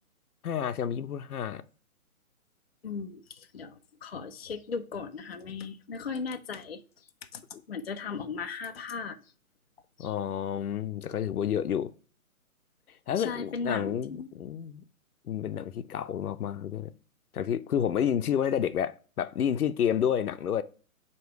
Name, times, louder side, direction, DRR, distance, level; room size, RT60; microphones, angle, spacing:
voice 1, 0.4-1.6 7.5-7.6 10.0-11.9 13.1-14.8 15.3-16.9 17.3-20.6, left 9 dB, 80° left, 0.7 m, -30 dB
voice 2, 2.8-6.8 7.3-7.4 7.7-9.2 10.0-10.1 13.2-14.3, left 5 dB, 45° left, 0.5 m, -37 dB
8.0 x 3.0 x 4.5 m
hypercardioid pair, 175°, 44 cm